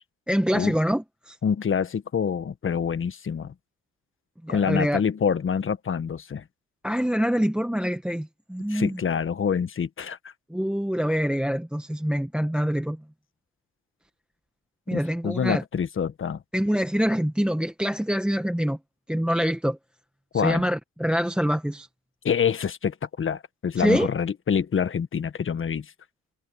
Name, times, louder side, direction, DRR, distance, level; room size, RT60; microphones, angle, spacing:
voice 1, 0.3-1.4 4.4-5.0 6.8-9.0 10.5-13.0 14.9-15.6 16.5-18.8 19.1-19.8 20.3-21.9 23.8-24.1, equal, 5° right, 1.5 m, -25 dB
voice 2, 1.4-3.5 4.5-6.4 8.7-10.3 14.9-16.4 20.3-20.6 22.2-25.9, left 7 dB, 40° left, 1.5 m, -26 dB
cardioid pair, 90°, 30 cm